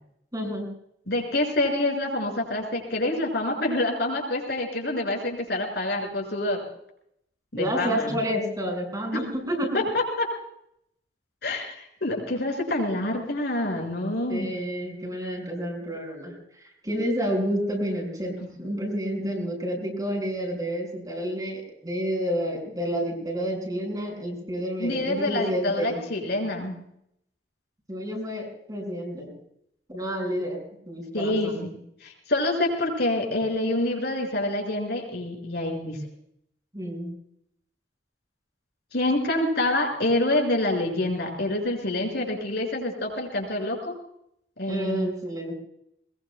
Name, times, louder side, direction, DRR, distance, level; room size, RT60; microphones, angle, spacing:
voice 1, 0.3-0.7 7.6-9.8 14.3-16.3 16.6-26.0 27.9-29.4 29.9-30.6 30.9-31.6 36.7-37.1 44.7-45.5, equal, 20° right, 1 dB, 5.9 m, -29 dB
voice 2, 1.1-6.6 7.5-8.2 9.7-10.3 11.4-14.5 24.8-26.8 31.1-31.7 32.0-36.0 38.9-43.9 44.6-45.1, left 1 dB, 65° left, 0 dB, 6.3 m, -27 dB
21.5 x 21.5 x 2.3 m, 0.74 s
head